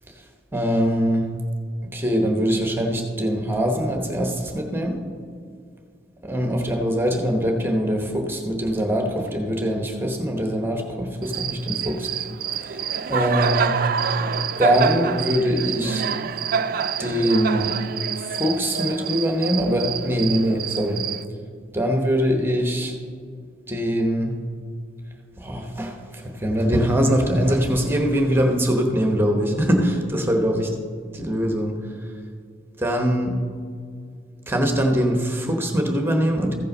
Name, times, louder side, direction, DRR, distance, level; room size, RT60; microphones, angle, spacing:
voice 1, 0.5-1.3 1.9-5.0 6.2-13.8 14.6-16.1 17.0-17.8 18.2-21.1 21.7-23.0 23.7-24.4 25.4-30.8 31.1-31.8 32.8-33.4 34.5-36.5, equal, 15° right, 2 dB, 0.9 m, -23 dB
Cricket, 11.2-21.2, right 7 dB, 50° right, 0.3 m, -27 dB
14.5 x 5.4 x 5.3 m, 2.2 s
head